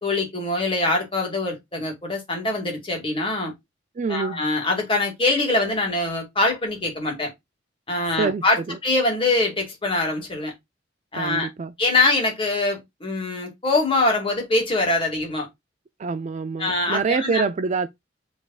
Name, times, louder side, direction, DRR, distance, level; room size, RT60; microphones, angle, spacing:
voice 1, 0.0-3.5 4.1-7.3 7.9-10.5 11.1-11.5 11.8-15.5 16.6-17.4, left 2 dB, 30° left, 2.0 m, -23 dB
voice 2, 4.0-4.4 8.2-8.8 11.1-11.7 16.0-17.9, right 4 dB, 40° right, 0.4 m, -26 dB
6.4 x 3.4 x 2.3 m
head